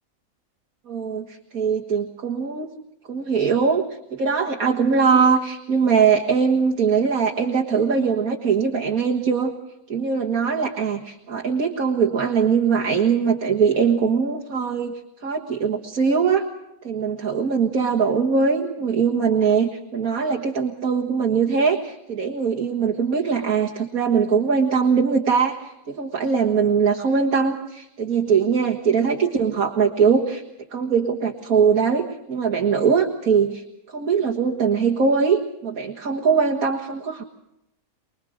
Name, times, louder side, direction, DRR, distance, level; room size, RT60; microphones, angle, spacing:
voice 1, 0.9-2.7 3.1-3.8 4.1-9.5 9.9-14.9 15.2-16.5 16.8-30.4 30.7-37.2, right 6 dB, 80° right, 0 dB, 2.0 m, -21 dB
25.0 x 21.5 x 6.4 m, 0.84 s
omnidirectional pair, 1.5 m